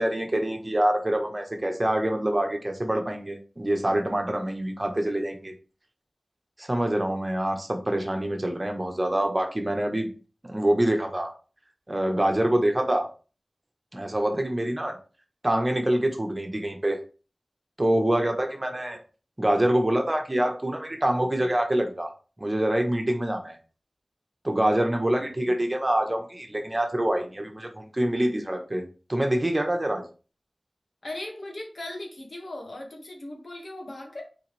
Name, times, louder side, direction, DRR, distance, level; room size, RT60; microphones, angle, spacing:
voice 1, 0.0-5.5 6.6-10.1 10.4-11.3 11.9-13.1 13.9-15.0 15.4-17.0 17.8-19.0 19.4-22.1 22.4-23.6 24.4-28.8 29.1-30.0, right 1 dB, 30° right, 3 dB, 1.4 m, -25 dB
voice 2, 31.0-34.2, left 1 dB, 75° left, 0 dB, 2.0 m, -38 dB
6.8 x 4.3 x 3.5 m, 0.36 s
wide cardioid pair, 65°, 0 cm